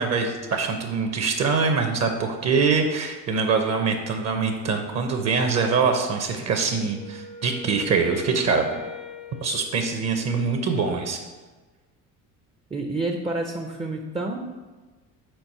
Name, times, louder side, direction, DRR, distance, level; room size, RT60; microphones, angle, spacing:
voice 1, 0.0-8.6 9.4-11.2, right 5 dB, 45° right, 5 dB, 0.7 m, -24 dB
Wind instrument woodwind instrument, 6.7-10.6, left 7 dB, 80° left, 1.0 m, -42 dB
voice 2, 12.7-14.4, right 2 dB, 15° right, 3 dB, 0.4 m, -29 dB
4.6 x 4.1 x 5.4 m, 1.3 s
cardioid pair, 110°, 35 cm